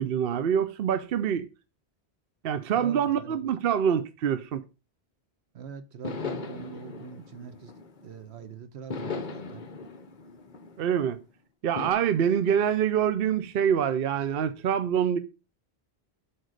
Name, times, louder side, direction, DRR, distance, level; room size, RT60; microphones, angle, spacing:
voice 1, 0.0-1.5 2.4-4.6 10.8-11.2 11.6-15.2, right 8 dB, 65° right, 0.8 m, -25 dB
voice 2, 2.7-3.4 5.5-7.7 8.0-9.7, right 6 dB, 80° right, 1.2 m, -43 dB
sound 1, 6.0-8.3 8.9-11.2 11.8-11.9, left 4 dB, 50° left, 1.1 m, -38 dB
8.0 x 4.0 x 6.4 m
omnidirectional pair, 1.1 m